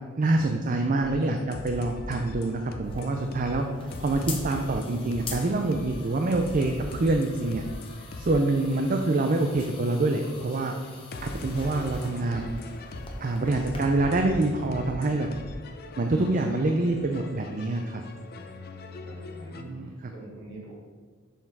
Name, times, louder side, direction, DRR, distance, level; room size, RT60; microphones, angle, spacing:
voice 1, 0.2-7.6 8.2-10.7 11.2-12.6 13.2-15.3 16.0-18.0 19.6-20.1, right 2 dB, 40° right, 4 dB, 0.5 m, -26 dB
sound 1, 1.0-19.6, left 2 dB, 45° left, 0.6 m, -40 dB
sound 2, 2.8-13.8, left 4 dB, 25° left, 1.0 m, -45 dB
voice 2, 19.0-20.7, right 2 dB, 55° right, -4 dB, 2.5 m, -46 dB
7.2 x 5.6 x 4.6 m, 1.5 s
head